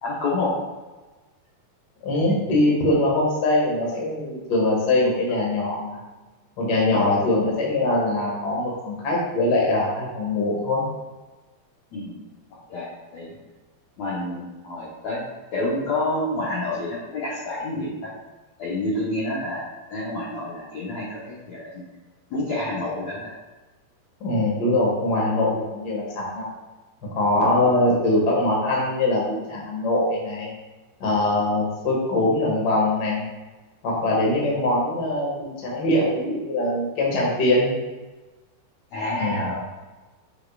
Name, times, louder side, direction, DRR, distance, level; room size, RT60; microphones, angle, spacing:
voice 1, 0.0-0.5 2.2-2.4 11.9-12.2 12.7-13.4 14.0-15.2 15.5-18.1 18.6-19.6 19.9-21.8 22.3-23.3 38.9-39.6, left 2 dB, 70° left, -7 dB, 1.7 m, -28 dB
voice 2, 2.0-6.0 6.6-10.8 24.2-26.4 27.0-30.5 31.0-33.2 33.8-37.7 39.2-39.6, left 2 dB, 45° left, -4 dB, 1.3 m, -22 dB
8.4 x 5.6 x 2.4 m, 1.2 s
omnidirectional pair, 4.6 m